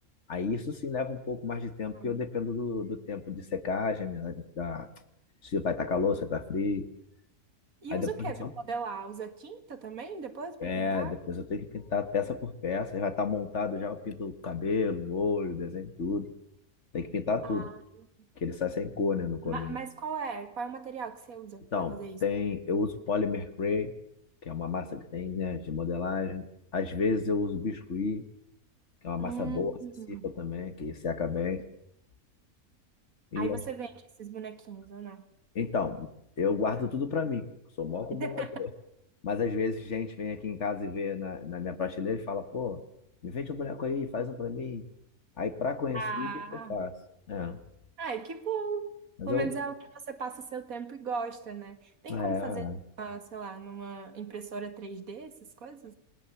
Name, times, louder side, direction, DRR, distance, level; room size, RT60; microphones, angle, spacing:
voice 1, 0.3-4.9 5.4-6.9 7.9-8.5 10.6-16.3 16.9-17.7 18.4-19.8 21.7-23.9 24.4-26.5 26.7-28.2 29.0-29.7 30.2-31.6 33.3-33.6 35.6-36.1 36.4-37.5 37.8-38.7 39.2-42.8 43.2-44.8 45.4-46.3 46.7-46.9 47.3-47.6 49.2-49.5 52.1-52.8, left 5 dB, 50° left, 10 dB, 1.6 m, -31 dB
voice 2, 1.9-2.2 7.8-11.1 17.4-18.1 19.4-22.2 29.2-30.3 33.4-33.9 34.2-35.3 38.1-38.6 45.9-46.8 48.0-48.9 49.3-52.7 53.0-55.9, right 5 dB, 65° right, 8 dB, 2.2 m, -38 dB
28.0 x 20.5 x 7.1 m, 0.79 s
omnidirectional pair, 1.6 m